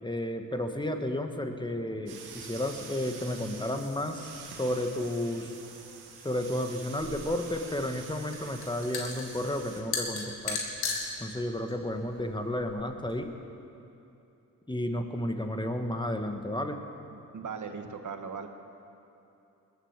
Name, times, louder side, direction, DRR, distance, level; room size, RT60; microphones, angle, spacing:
voice 1, 0.0-4.3 4.6-5.5 6.2-10.6 11.2-13.3 14.7-16.8, left 1 dB, 10° left, 5 dB, 1.6 m, -32 dB
sound 1, 2.1-9.8, right 5 dB, 90° right, 1.8 m, -47 dB
sound 2, 7.0-13.1, left 4 dB, 80° left, 2.2 m, -37 dB
voice 2, 17.1-18.5, right 5 dB, 50° right, 6 dB, 1.5 m, -39 dB
20.5 x 8.2 x 7.4 m, 2.8 s
supercardioid pair, 50°, 37 cm